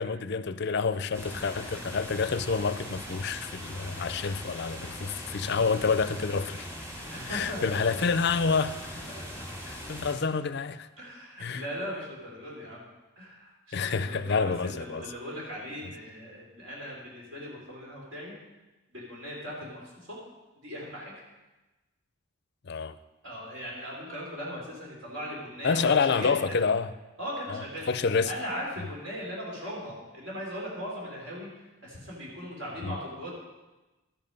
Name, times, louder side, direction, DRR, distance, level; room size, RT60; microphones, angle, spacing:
voice 1, 0.0-6.7 7.3-9.0 9.7-10.9 11.4-11.6 13.7-15.0 22.6-23.0 25.6-26.9 27.5-27.6 27.9-28.3 32.8-33.0, left 5 dB, 55° left, 0.5 m, -28 dB
sound 1, 1.1-10.2, equal, 15° right, 2.0 m, -40 dB
voice 2, 7.1-7.8 9.1-9.2 11.0-12.9 13.2-18.4 18.9-19.8 20.1-20.2 20.6-21.1 23.2-26.6 27.2-28.0 28.3-31.5 31.8-33.3, equal, 60° right, 3.5 m, -38 dB
12.5 x 9.7 x 5.4 m
head